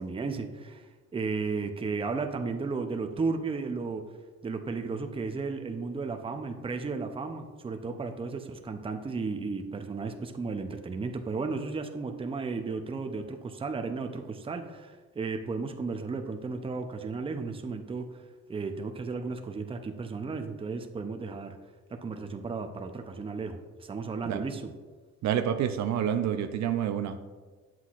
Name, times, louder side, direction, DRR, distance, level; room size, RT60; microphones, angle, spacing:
voice 1, 0.0-4.1 4.4-18.2 18.5-21.6 21.9-24.7, right 4 dB, 20° right, 6 dB, 0.5 m, -34 dB
voice 2, 25.2-27.3, right 9 dB, 65° right, 9 dB, 0.5 m, -28 dB
7.9 x 5.9 x 2.4 m, 1.4 s
cardioid pair, 90°, 30 cm